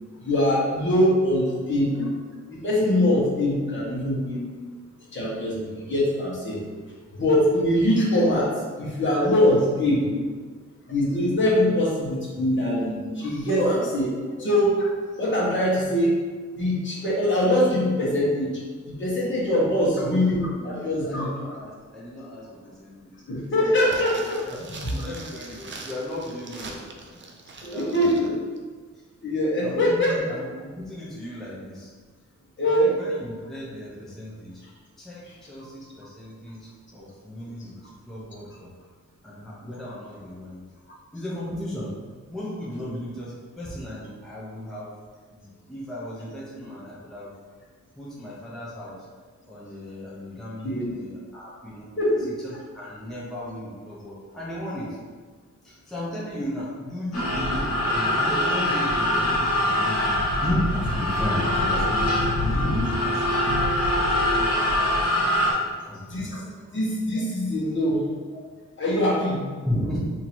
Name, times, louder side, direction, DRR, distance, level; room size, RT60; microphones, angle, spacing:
voice 1, 0.2-2.1 2.5-4.4 5.1-6.6 7.1-10.3 10.9-14.1 14.4-14.9 15.2-16.2 16.6-18.5 18.8-21.3 23.3-24.4 24.8-25.1 27.6-28.3 29.2-30.2 32.6-32.9 50.6-50.9 52.0-52.3 66.1-66.4 66.7-68.0 68.8-69.5, left 1 dB, 40° left, -6 dB, 1.2 m, -23 dB
voice 2, 19.8-20.2 20.6-23.1 23.6-27.2 27.7-28.3 29.6-31.9 32.9-34.6 35.0-37.7 38.1-38.7 39.2-40.6 41.1-42.0 42.3-44.9 45.3-47.3 48.0-49.1 49.5-52.2 52.4-55.0 55.6-63.6 63.9-65.1 65.4-65.5 65.8-66.3 68.3-68.4 69.6-70.0, left 1 dB, ahead, -7 dB, 0.7 m, -35 dB
sound 1, 23.8-28.3 28.6-28.7, right 3 dB, 40° right, 0.5 m, -42 dB
sound 2, 57.1-65.5, left 1 dB, 60° left, 1.0 m, -23 dB
2.9 x 2.8 x 4.2 m, 1.5 s
wide cardioid pair, 115°, 30 cm